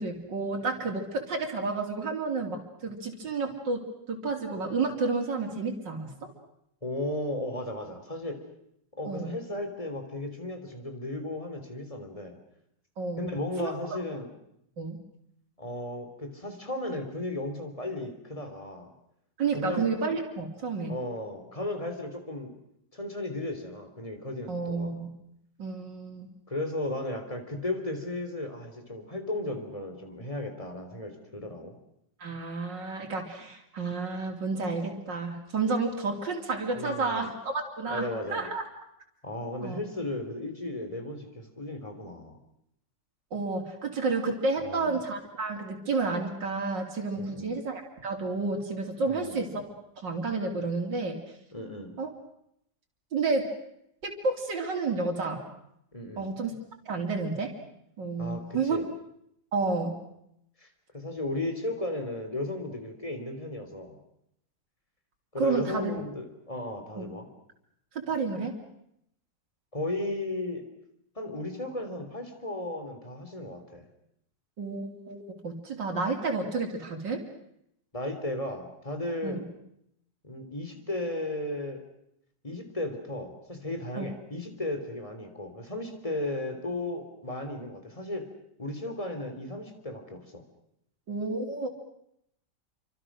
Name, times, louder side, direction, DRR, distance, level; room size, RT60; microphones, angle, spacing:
voice 1, 0.0-6.1 9.1-9.3 13.0-13.3 13.6-13.8 14.8-15.0 19.4-20.9 24.5-25.1 25.6-26.3 32.2-38.6 39.6-39.8 43.3-49.6 50.0-51.2 52.0-52.1 53.1-53.5 54.0-55.4 56.2-56.5 56.9-57.5 58.0-58.8 59.5-60.0 65.4-65.9 67.0-67.1 68.1-68.6 74.6-77.2 79.2-79.4 84.0-84.1 91.1-91.7, right 3 dB, 85° right, 1 dB, 3.7 m, -30 dB
voice 2, 6.8-8.4 9.0-12.4 13.2-14.3 15.6-18.9 19.5-19.9 20.9-22.5 22.9-24.9 26.5-31.8 36.7-37.3 37.9-38.5 39.2-42.4 44.6-45.0 47.2-47.6 49.0-49.4 51.5-51.9 55.9-56.3 58.2-58.8 60.6-60.7 60.9-64.0 65.3-67.3 69.7-70.6 71.2-73.9 77.9-79.4 80.2-81.8 82.4-88.2 88.6-90.4, left 1 dB, 20° left, 6 dB, 3.7 m, -35 dB
29.5 x 25.0 x 6.4 m, 0.77 s
omnidirectional pair, 1.9 m